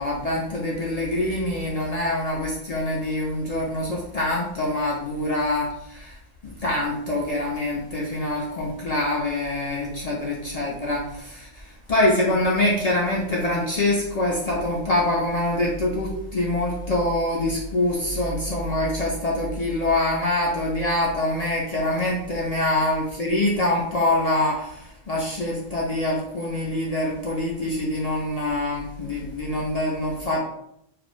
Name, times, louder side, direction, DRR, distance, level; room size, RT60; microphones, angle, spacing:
voice 1, 0.0-6.2 6.4-30.4, left 1 dB, 55° left, -4 dB, 0.4 m, -25 dB
2.4 x 2.1 x 3.1 m, 0.75 s
omnidirectional pair, 1.1 m